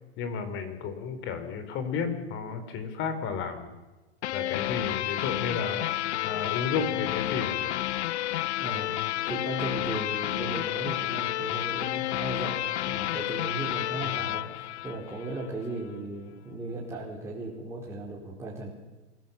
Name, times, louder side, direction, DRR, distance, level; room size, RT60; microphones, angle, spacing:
voice 1, 0.2-3.7 4.3-5.8 6.2-7.8 14.1-14.4, left 6 dB, 35° left, 9 dB, 4.2 m, -32 dB
sound 1, 4.2-15.5, left 14 dB, 80° left, 0.6 m, -31 dB
voice 2, 8.6-8.9 9.3-18.7, right 2 dB, 10° right, -6 dB, 4.4 m, -36 dB
26.5 x 17.0 x 7.3 m, 1.2 s
hypercardioid pair, 125°, 33 cm